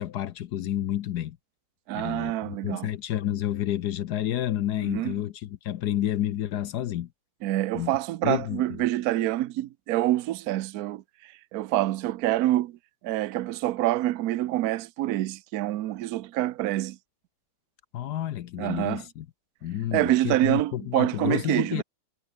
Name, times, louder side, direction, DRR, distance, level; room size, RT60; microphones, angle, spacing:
voice 1, 0.0-1.4 1.9-7.1 7.7-7.9 8.2-8.6 17.9-19.3 19.6-21.8, left 12 dB, 65° left, 1.1 m, -30 dB
voice 2, 1.9-2.9 4.8-5.1 7.4-12.8 13.0-17.0 18.6-19.0 19.9-21.8, right 15 dB, 80° right, 0.8 m, -26 dB
omnidirectional pair, 2.3 m